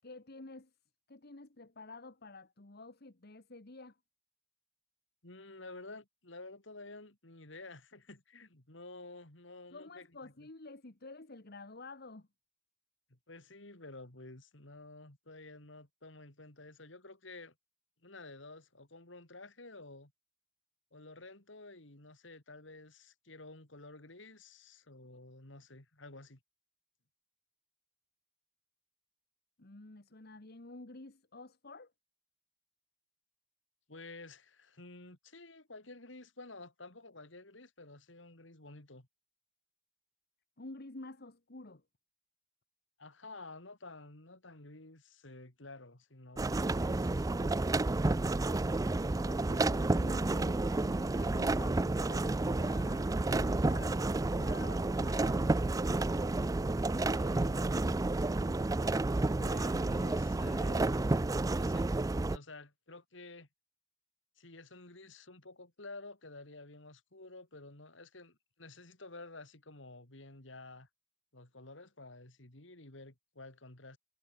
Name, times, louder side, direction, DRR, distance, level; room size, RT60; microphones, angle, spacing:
voice 1, 0.0-0.7 1.1-4.0 9.7-12.3 29.6-31.9 40.6-41.8 49.2-55.5, left 2 dB, 55° left, 1.5 m, -50 dB
voice 2, 5.2-10.5 13.1-17.5 18.0-20.1 20.9-26.4 33.9-39.1 43.0-47.7 56.9-58.0 59.4-61.2 61.5-61.9 62.3-63.5 64.4-70.9 71.3-74.0, left 2 dB, 70° left, 3.5 m, -51 dB
sound 1, 46.4-62.4, right 2 dB, 20° right, 0.4 m, -31 dB
head